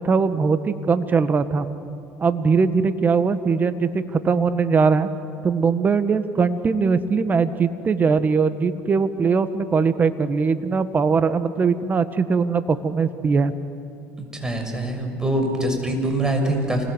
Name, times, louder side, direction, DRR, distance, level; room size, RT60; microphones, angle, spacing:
voice 1, 0.0-1.7 2.2-5.1 5.4-13.5, right 5 dB, 30° right, 11 dB, 1.7 m, -21 dB
voice 2, 14.2-16.8, right 1 dB, 10° right, 3 dB, 6.3 m, -24 dB
28.5 x 21.0 x 8.3 m, 2.6 s
supercardioid pair, 85°, 6 cm